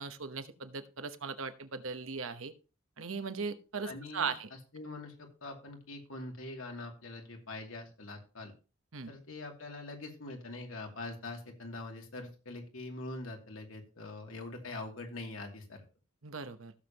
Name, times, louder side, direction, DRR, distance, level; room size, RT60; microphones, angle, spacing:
voice 1, 0.0-2.5 3.0-4.5 8.9-9.1 16.2-16.7, right 5 dB, 75° right, 10 dB, 1.0 m, -38 dB
voice 2, 3.8-8.5 9.1-15.8, left 2 dB, 75° left, 2 dB, 2.5 m, -44 dB
16.0 x 7.2 x 2.9 m, 0.34 s
head